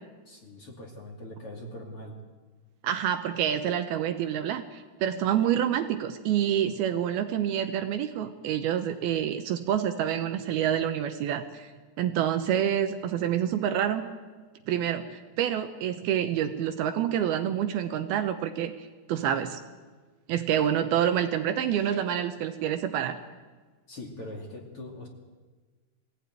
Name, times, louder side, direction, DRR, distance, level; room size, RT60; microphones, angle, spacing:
voice 1, 0.3-2.2 23.9-25.1, left 1 dB, 35° left, 0 dB, 2.9 m, -42 dB
voice 2, 2.8-11.7 12.0-14.1 14.7-19.6 20.3-23.2, right 10 dB, 75° right, 7 dB, 2.6 m, -27 dB
22.5 x 16.0 x 9.2 m, 1.4 s
omnidirectional pair, 4.8 m